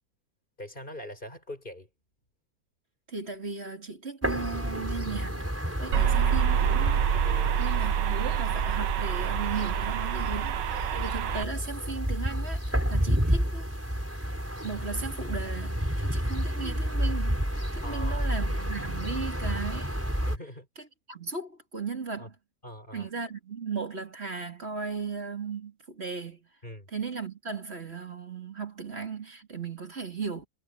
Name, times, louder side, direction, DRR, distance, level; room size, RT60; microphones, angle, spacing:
voice 1, 0.6-1.9 5.9-6.3 7.1-7.6 12.6-13.3 17.8-18.3 20.3-20.7 22.2-22.3 22.6-23.1 26.6-26.9, left 1 dB, 25° left, 6.7 m, -43 dB
voice 2, 3.1-5.5 5.8-7.1 7.6-13.7 14.6-17.4 17.7-20.0 21.1-22.3 22.9-26.5 26.9-30.5, right 5 dB, 35° right, 3.6 m, -36 dB
sound 1, 4.2-20.4, equal, 5° right, 5.4 m, -30 dB
sound 2, 5.9-11.5, right 9 dB, 80° right, 1.5 m, -27 dB
omnidirectional pair, 1.9 m